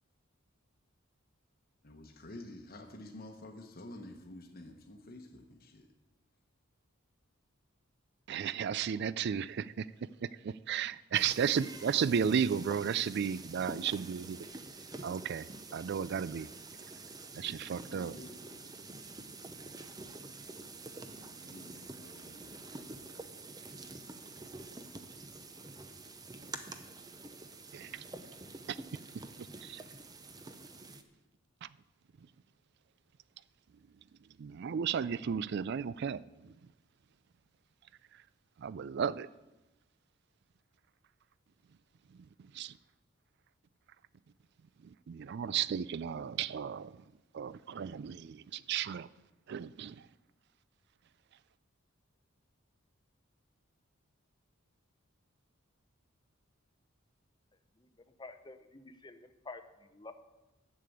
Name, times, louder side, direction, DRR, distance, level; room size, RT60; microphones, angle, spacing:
voice 1, 1.8-5.9 17.5-18.7 21.2-22.8, left 1 dB, 45° left, 1.0 m, -50 dB
voice 2, 8.3-9.9 10.2-14.4 15.0-15.5 15.7-16.5 17.3-18.2 27.7-28.0 28.7-28.8 29.6-29.8 31.6-31.7 34.4-36.5 38.6-39.3 42.5-42.7 45.1-47.0 47.3-49.1 49.5-50.0, right 7 dB, 50° right, 0.3 m, -34 dB
sound 1, 11.1-31.0, right 3 dB, 20° right, 0.6 m, -47 dB
voice 3, 58.2-60.1, left 3 dB, 20° left, 0.7 m, -49 dB
11.0 x 6.7 x 8.4 m
head